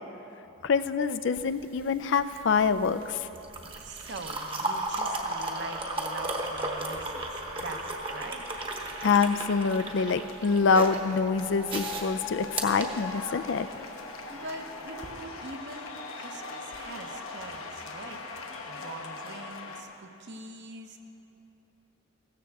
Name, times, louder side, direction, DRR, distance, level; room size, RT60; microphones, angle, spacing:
voice 1, 0.6-3.2 9.0-13.7, left 5 dB, 55° left, 11 dB, 0.4 m, -25 dB
sound 1, 1.4-13.7 14.9-15.1, right 2 dB, 25° right, 1.0 m, -35 dB
voice 2, 3.8-7.2 7.6-8.5 14.3-18.2 18.7-21.0, right 2 dB, 55° right, 5 dB, 0.9 m, -43 dB
Wind instrument woodwind instrument, 7.8-15.2, right 3 dB, 75° right, 2.7 m, -50 dB
sound 2, 8.5-19.8, left 3 dB, 75° left, 1.1 m, -41 dB
15.5 x 13.5 x 3.5 m, 3.0 s
head